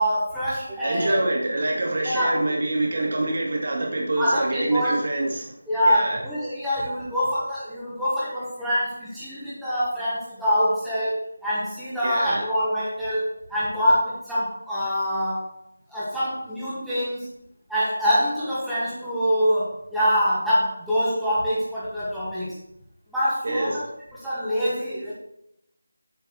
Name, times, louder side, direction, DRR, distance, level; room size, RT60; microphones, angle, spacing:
voice 1, 0.0-1.2 2.0-2.4 4.2-5.0 5.7-15.5 15.9-17.3 17.7-22.6 23.1-23.9 24.2-25.1, equal, ahead, -13 dB, 2.2 m, -25 dB
voice 2, 0.8-5.5 5.8-6.2 12.0-12.4 23.4-23.8, right 2 dB, 45° right, -1 dB, 2.1 m, -25 dB
9.2 x 7.8 x 3.4 m, 0.76 s
figure-of-eight pair, 160°, 0 cm